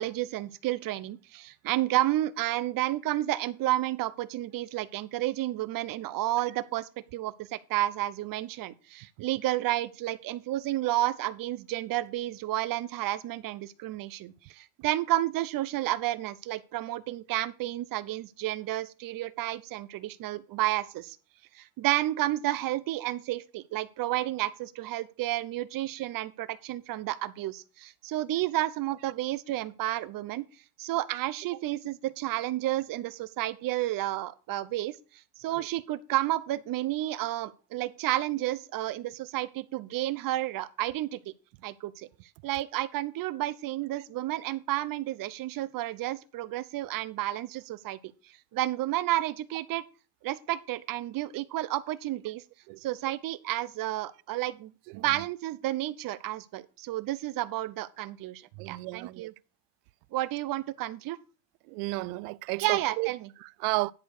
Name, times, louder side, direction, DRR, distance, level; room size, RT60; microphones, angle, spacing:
voice 1, 0.0-21.2 21.5-30.4 30.8-34.9 35.4-41.2 41.6-42.1 42.4-48.0 48.5-49.8 50.2-52.4 52.8-59.3 60.1-61.2 62.6-63.3, right 15 dB, 45° right, 0.8 m, -31 dB
voice 2, 54.9-55.2 58.6-59.3 61.7-63.1 63.4-63.9, right 24 dB, 75° right, 0.5 m, -33 dB
10.5 x 4.6 x 6.6 m
supercardioid pair, 115°, 47 cm